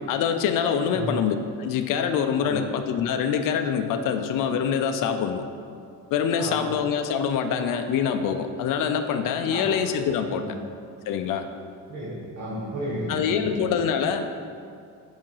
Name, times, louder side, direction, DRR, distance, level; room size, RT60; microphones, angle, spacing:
voice 1, 0.1-5.5 6.1-10.4 11.1-11.5 13.1-14.3, left 7 dB, 60° left, 7 dB, 0.5 m, -25 dB
voice 2, 6.4-6.7 9.5-9.7 10.3-10.5 11.9-13.6, equal, 45° right, -8 dB, 1.3 m, -33 dB
5.3 x 5.0 x 5.5 m, 2.3 s
cardioid pair, 175°, 37 cm